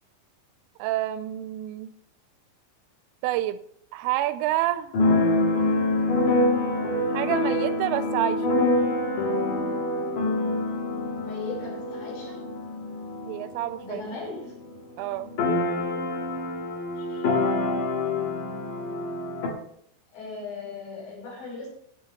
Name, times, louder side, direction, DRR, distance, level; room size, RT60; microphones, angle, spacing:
voice 1, 0.8-1.9 3.2-3.6 3.9-4.9 5.3-5.9 7.1-8.6 13.2-14.0 15.0-15.3, right 14 dB, 85° right, 13 dB, 3.0 m, -28 dB
Keyboard (musical), 4.9-14.5 14.8-14.9 15.1-19.5, left 2 dB, 55° left, 2.7 m, -26 dB
voice 2, 11.2-12.4 13.8-14.5 17.0-17.3 20.1-21.7, left 3 dB, 75° left, -3 dB, 7.7 m, -38 dB
17.0 x 8.7 x 3.2 m, 0.66 s
omnidirectional pair, 5.9 m